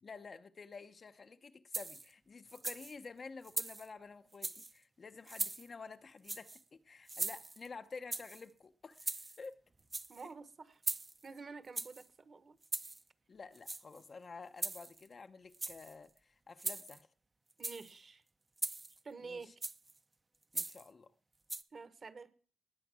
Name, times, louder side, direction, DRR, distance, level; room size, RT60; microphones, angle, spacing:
voice 1, 0.0-9.5 10.2-10.3 13.3-17.1 19.2-19.5 20.5-21.1, left 4 dB, 35° left, 0.7 m, -51 dB
sound 1, 1.7-2.1 2.5-3.0 3.4-3.9 4.3-4.7 5.3-5.7 6.2-6.6 7.1-7.7 8.1-8.4 9.0-9.5 9.8-10.2 10.8-11.3 11.8-12.1 12.6-13.0 13.6-14.0 14.6-15.1 15.5-15.9 16.6-17.0 17.5-17.9 18.6-19.0 19.6-19.9 20.5-20.9 21.5-21.6, right 2 dB, 20° right, 0.7 m, -40 dB
voice 2, 10.1-10.8 11.2-12.6 17.6-18.2 19.0-19.5 21.7-22.3, right 4 dB, 35° right, 1.2 m, -49 dB
19.0 x 9.1 x 6.1 m
wide cardioid pair, 160°, 0 cm